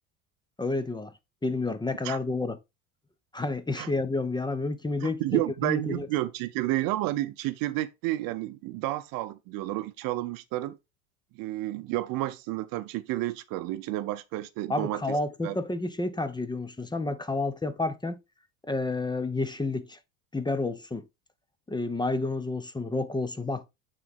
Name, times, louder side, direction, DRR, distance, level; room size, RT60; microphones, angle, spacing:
voice 1, 0.6-1.1 1.4-2.6 3.3-6.1 14.7-18.2 18.6-20.0 20.3-21.0 21.7-23.7, left 3 dB, 10° left, 1.0 m, -30 dB
voice 2, 5.0-10.8 11.3-15.2 15.4-15.6, right 16 dB, 55° right, 0.8 m, -31 dB
8.9 x 4.2 x 3.7 m
hypercardioid pair, 85°, 41 cm